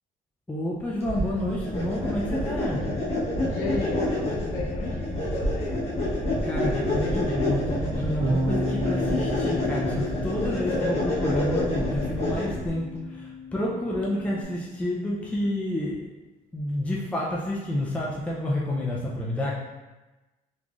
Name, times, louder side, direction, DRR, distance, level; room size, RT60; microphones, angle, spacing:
voice 1, 0.5-2.9 6.4-16.0 16.5-19.5, left 1 dB, 10° left, -4 dB, 0.5 m, -29 dB
sound 1, 1.0-12.7, left 1 dB, 35° left, 1.0 m, -28 dB
voice 2, 3.4-5.8, left 3 dB, 60° left, -4 dB, 1.2 m, -34 dB
Bass guitar, 8.2-14.4, equal, 70° right, 1.5 m, -33 dB
3.7 x 3.0 x 2.4 m, 1.1 s
cardioid pair, 110°, 17 cm